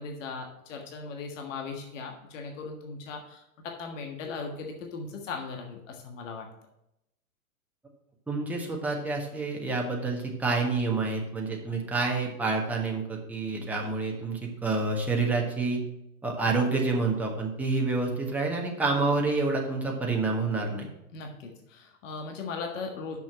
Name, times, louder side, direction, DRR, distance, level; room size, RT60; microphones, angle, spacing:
voice 1, 0.0-6.5 21.1-23.2, left 4 dB, 55° left, 2 dB, 1.6 m, -38 dB
voice 2, 8.3-15.8 16.2-20.9, right 3 dB, 5° right, -1 dB, 1.4 m, -28 dB
6.7 x 6.0 x 7.4 m, 0.85 s
figure-of-eight pair, 105°, 44 cm